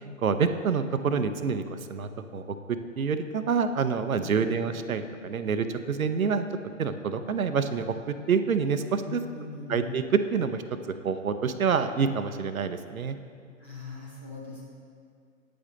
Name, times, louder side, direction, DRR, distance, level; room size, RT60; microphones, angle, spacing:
voice 1, 0.2-1.6 1.9-6.4 6.8-7.9 8.3-9.2 9.7-10.6 10.9-13.2, right 6 dB, 85° right, 10 dB, 0.6 m, -27 dB
voice 2, 4.2-4.6 9.0-10.0 13.6-14.6, left 4 dB, 10° left, -8 dB, 0.4 m, -41 dB
8.7 x 5.1 x 3.8 m, 2.2 s
figure-of-eight pair, 125°, 41 cm